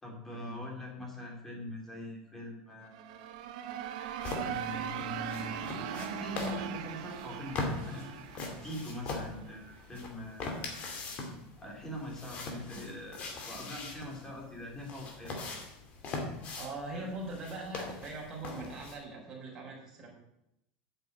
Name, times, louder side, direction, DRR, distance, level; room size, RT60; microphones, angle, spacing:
voice 1, 0.0-3.3 4.4-10.8 11.6-15.5 16.9-17.1, left 1 dB, 10° left, -1 dB, 3.0 m, -43 dB
sound 1, 2.8-9.6, right 10 dB, 75° right, 1.1 m, -40 dB
sound 2, 4.2-19.0, left 3 dB, 35° left, 2.5 m, -41 dB
voice 2, 16.6-20.1, right 2 dB, 15° right, -5 dB, 4.2 m, -41 dB
8.9 x 8.0 x 8.2 m, 0.83 s
cardioid pair, 170°, 4 cm